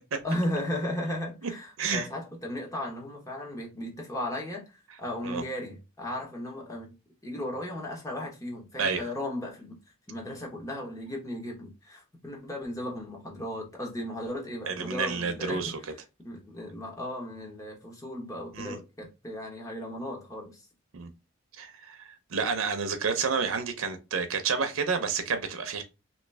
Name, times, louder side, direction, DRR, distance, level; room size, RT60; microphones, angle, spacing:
voice 1, 0.2-6.9 7.2-9.8 10.1-15.6 16.2-20.7, left 1 dB, 15° left, 1.1 m, -36 dB
voice 2, 14.7-15.8 18.5-18.8 20.9-21.1 21.6-25.8, right 5 dB, 90° right, 0.6 m, -30 dB
3.1 x 3.0 x 3.3 m
head